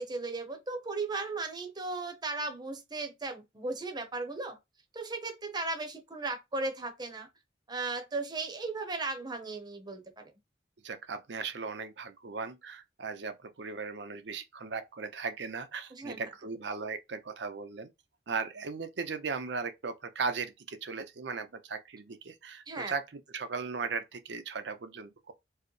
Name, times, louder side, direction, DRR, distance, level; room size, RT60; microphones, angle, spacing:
voice 1, 0.0-4.6 4.9-7.3 7.7-10.3 15.9-16.2 22.7-22.9, right 3 dB, 25° right, 0.7 m, -36 dB
voice 2, 10.8-17.9 18.3-25.3, right 4 dB, 80° right, 0.6 m, -37 dB
4.6 x 2.1 x 3.1 m
head